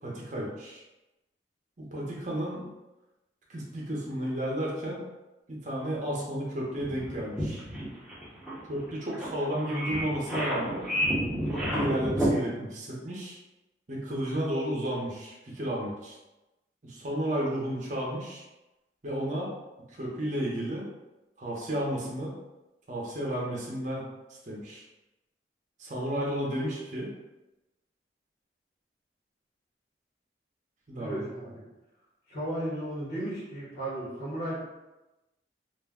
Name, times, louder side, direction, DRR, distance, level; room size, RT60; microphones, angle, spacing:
voice 1, 0.0-0.8 1.8-2.7 3.5-5.0 5.5-7.6 8.7-10.9 11.5-13.4 13.9-16.2 16.8-18.4 19.0-19.5 19.9-20.8 21.4-22.3 22.9-24.0 24.4-24.8 25.8-27.1 30.9-31.3, equal, 40° right, -4 dB, 0.7 m, -32 dB
sound 1, 6.8-12.3, equal, ahead, 0.7 m, -30 dB
voice 2, 31.0-31.6 32.3-34.5, right 1 dB, 50° left, -7 dB, 0.9 m, -34 dB
2.5 x 2.1 x 3.5 m, 1.0 s
head